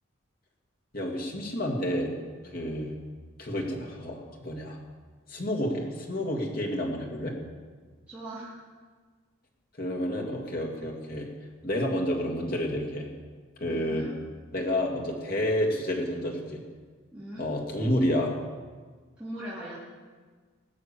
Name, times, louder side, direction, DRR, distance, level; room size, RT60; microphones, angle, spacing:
voice 1, 0.9-2.1 2.4-2.9 3.4-4.8 5.3-7.4 9.8-11.3 11.6-13.1 13.6-14.1 14.5-16.6 17.4-18.3, left 1 dB, 50° left, 0 dB, 2.4 m, -29 dB
voice 2, 8.1-8.6 13.6-14.2 17.1-17.5 19.2-19.7, right 1 dB, 5° right, -10 dB, 2.7 m, -40 dB
18.5 x 6.5 x 8.6 m, 1.5 s
head